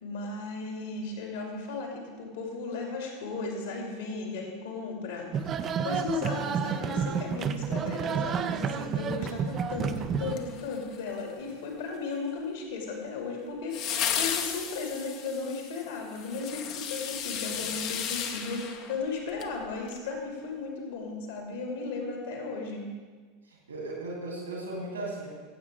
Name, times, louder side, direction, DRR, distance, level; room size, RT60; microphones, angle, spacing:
voice 1, 0.0-5.5 5.8-22.9, left 4 dB, 65° left, 0 dB, 2.6 m, -35 dB
sound 1, 5.3-10.3, right 7 dB, 30° right, 0.6 m, -30 dB
sound 2, 10.3-11.2 13.7-19.5 19.9-20.0, left 8 dB, 45° left, 1.0 m, -34 dB
voice 2, 23.7-25.3, right 2 dB, 80° right, -2 dB, 3.1 m, -36 dB
15.0 x 8.1 x 3.7 m, 1.5 s
figure-of-eight pair, 80°, 0 cm